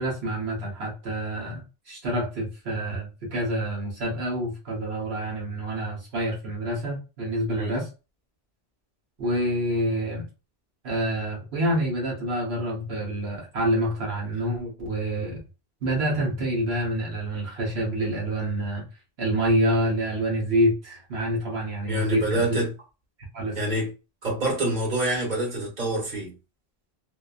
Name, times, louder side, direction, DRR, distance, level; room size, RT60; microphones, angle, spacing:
voice 1, 0.0-7.9 9.2-10.2 10.8-15.4 15.8-18.9 19.2-22.6 23.3-23.6, right 1 dB, 80° right, 1.2 m, -27 dB
voice 2, 21.9-22.7 23.5-23.9 24.2-26.3, right 1 dB, 45° right, 1.2 m, -26 dB
2.6 x 2.2 x 2.3 m
omnidirectional pair, 1.0 m